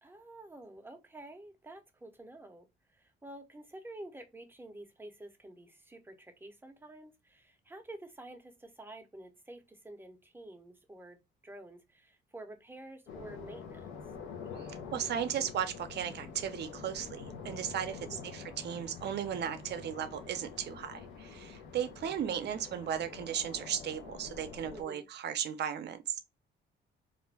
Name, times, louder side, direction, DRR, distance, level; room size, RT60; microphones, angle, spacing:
voice 1, 0.0-11.2 11.4-13.9 18.0-18.3 22.2-22.9 24.7-25.1, right 1 dB, 10° right, 0.6 m, -50 dB
sound 1, 13.1-24.8, left 5 dB, 90° left, 0.7 m, -46 dB
voice 2, 14.6-26.2, right 9 dB, 60° right, 0.5 m, -36 dB
2.4 x 2.1 x 3.2 m
cardioid pair, 90°, 20 cm